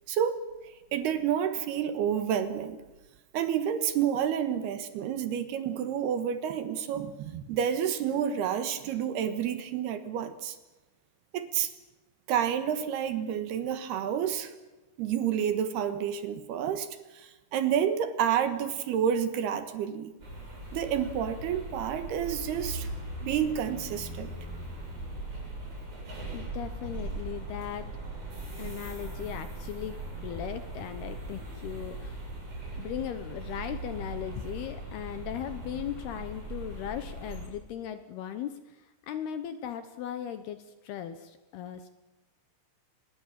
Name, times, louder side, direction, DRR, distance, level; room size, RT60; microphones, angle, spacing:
voice 1, 0.1-2.8 3.3-10.6 11.3-11.7 12.3-14.5 15.0-20.1 20.7-22.9 23.2-24.3, right 9 dB, 70° right, 10 dB, 2.9 m, -29 dB
sound 1, 20.2-37.5, right 2 dB, 30° right, 7.9 m, -39 dB
voice 2, 26.3-27.9 28.6-32.3 32.8-41.9, left 10 dB, 75° left, 10 dB, 2.5 m, -38 dB
25.0 x 21.0 x 7.4 m, 1.1 s
omnidirectional pair, 5.7 m